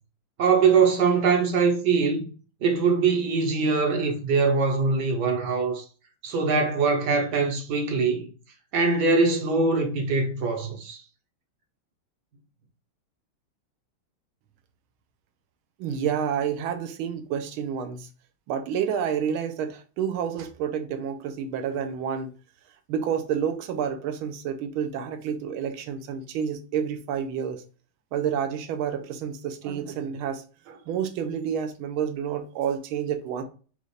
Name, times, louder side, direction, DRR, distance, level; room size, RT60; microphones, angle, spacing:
voice 1, 0.4-2.3 2.6-5.8 6.2-8.3 8.7-11.0, right 4 dB, 60° right, 1.3 m, -22 dB
voice 2, 15.8-18.1 18.5-22.3 22.9-27.6 28.1-33.4, right 8 dB, 80° right, 1.5 m, -29 dB
5.4 x 2.4 x 3.1 m
omnidirectional pair, 2.3 m